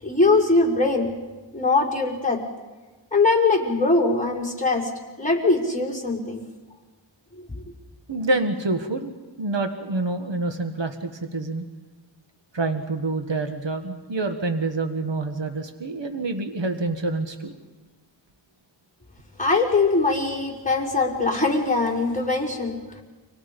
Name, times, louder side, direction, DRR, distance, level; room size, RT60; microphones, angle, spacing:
voice 1, 0.0-1.1 1.5-2.4 3.1-4.9 5.2-6.4 19.4-23.0, left 3 dB, 15° left, -2 dB, 5.1 m, -21 dB
voice 2, 8.1-11.6 12.5-17.5, right 2 dB, 70° right, 6 dB, 1.6 m, -27 dB
30.0 x 25.5 x 5.3 m, 1.3 s
wide cardioid pair, 60°, 46 cm